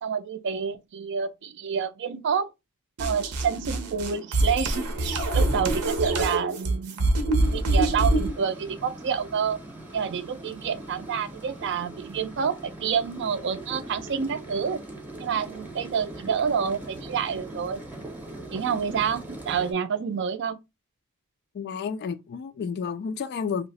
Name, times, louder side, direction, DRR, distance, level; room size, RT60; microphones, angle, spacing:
voice 1, 0.0-2.5 3.0-7.1 7.5-9.6 9.9-14.8 15.2-17.8 18.5-20.6, right 7 dB, 55° right, 0.4 m, -28 dB
sound 1, 3.0-8.3, right 2 dB, 90° right, 0.7 m, -24 dB
sound 2, 7.4-19.7, right 1 dB, 5° right, 0.7 m, -41 dB
voice 2, 21.5-23.7, left 6 dB, 45° left, 0.3 m, -31 dB
2.8 x 2.0 x 4.0 m
head